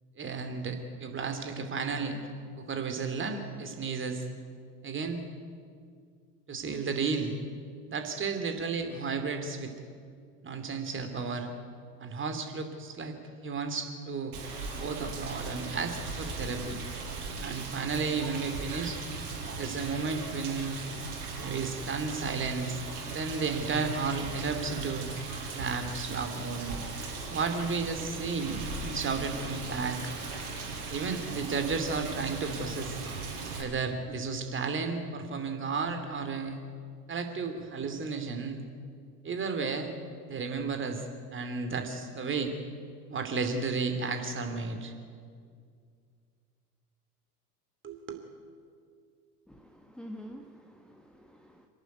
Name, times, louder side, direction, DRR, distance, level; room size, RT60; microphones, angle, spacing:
voice 1, 0.2-2.2 2.6-4.2 4.8-5.2 6.5-7.3 7.9-9.7 10.4-11.5 12.0-13.1 13.4-14.3 14.8-16.8 17.4-19.0 19.6-20.8 21.4-22.8 23.1-25.1 25.5-26.8 27.3-30.0 30.9-32.9 33.6-36.6 37.1-38.6 39.2-39.9 40.3-41.0 41.3-42.5 43.1-44.9 47.8-48.2, right 4 dB, 25° right, 6 dB, 2.9 m, -33 dB
Rain, 14.3-33.6, right 3 dB, 70° right, 4.8 m, -38 dB
voice 2, 49.5-51.7, equal, ahead, 4 dB, 1.2 m, -47 dB
26.5 x 11.5 x 9.6 m, 2.2 s
figure-of-eight pair, 75°, 47 cm